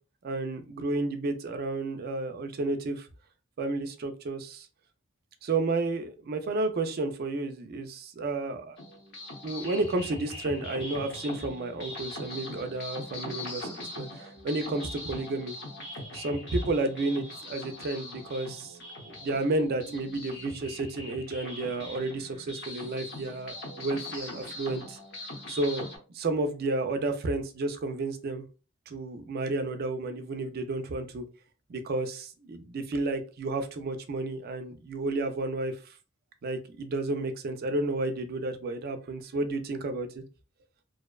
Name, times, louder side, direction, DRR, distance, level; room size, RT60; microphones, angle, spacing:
voice 1, 0.2-3.1 3.6-4.7 5.4-8.8 9.4-15.5 16.1-18.8 19.0-25.0 25.5-25.9 26.1-28.4 28.9-31.2 31.7-35.9 36.4-40.2, right 2 dB, 50° right, 0.4 m, -31 dB
sound 1, 8.8-26.0, left 1 dB, 60° left, 0.8 m, -41 dB
2.6 x 2.1 x 2.3 m
head